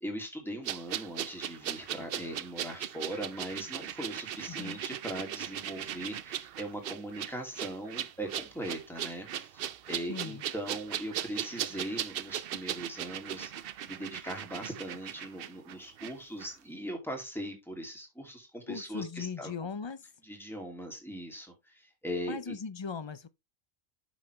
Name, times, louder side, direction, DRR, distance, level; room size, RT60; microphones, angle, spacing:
voice 1, 0.0-19.5 20.2-22.6, right 1 dB, ahead, 2.6 m, -40 dB
sound 1, 0.6-16.1 16.4-16.5, right 10 dB, 60° right, 0.7 m, -38 dB
voice 2, 4.5-4.8 10.1-10.4 18.7-20.1 22.3-23.3, left 5 dB, 40° left, 0.4 m, -38 dB
9.7 x 6.2 x 3.2 m
omnidirectional pair, 1.3 m